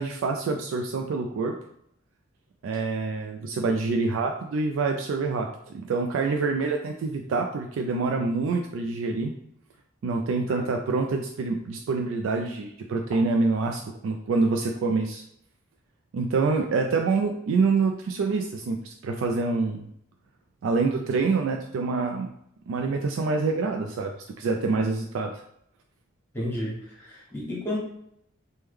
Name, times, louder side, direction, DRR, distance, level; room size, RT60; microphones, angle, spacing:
voice 1, 0.0-1.5 2.6-5.5 5.7-9.3 10.0-15.2 16.1-19.9 20.6-22.3 22.7-24.1 24.4-25.3, right 4 dB, 75° right, 3 dB, 0.3 m, -26 dB
voice 2, 26.3-27.8, left 1 dB, 10° left, -5 dB, 1.1 m, -32 dB
3.1 x 2.1 x 3.4 m, 0.73 s
head